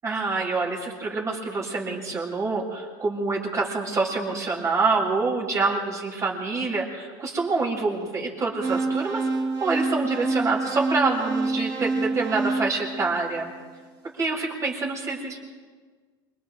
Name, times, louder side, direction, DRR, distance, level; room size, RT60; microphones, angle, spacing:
voice 1, 0.0-9.3 9.6-13.5 14.1-15.4, right 3 dB, 30° right, -2 dB, 7.8 m, -26 dB
sound 1, 8.6-13.7, right 3 dB, 45° right, 7.2 m, -28 dB
29.0 x 26.0 x 3.9 m, 1.5 s
supercardioid pair, 110°, 11 cm